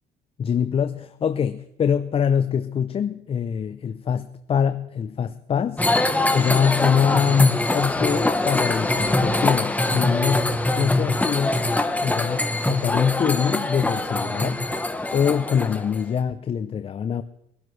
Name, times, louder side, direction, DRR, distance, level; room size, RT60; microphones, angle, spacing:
voice 1, 0.4-5.8 6.3-11.7 12.0-14.6 15.1-17.2, left 7 dB, 35° left, 0.5 m, -24 dB
sound 1, 5.8-16.0, left 2 dB, 10° left, 1.0 m, -23 dB
23.0 x 12.5 x 3.2 m
cardioid pair, 110°, 17 cm